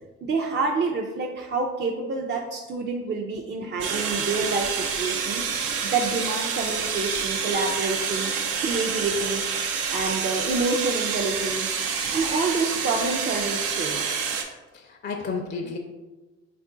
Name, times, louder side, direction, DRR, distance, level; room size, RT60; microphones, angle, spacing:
voice 1, 0.2-5.4 5.9-8.3 8.6-9.5 9.9-11.7 12.1-14.0, right 3 dB, 35° right, 0 dB, 0.4 m, -27 dB
sound 1, 3.8-14.4, right 6 dB, 85° right, 0.6 m, -28 dB
voice 2, 14.7-15.8, left 4 dB, 35° left, 2 dB, 0.4 m, -32 dB
3.6 x 2.4 x 3.7 m, 1.2 s
cardioid pair, 90°, 30 cm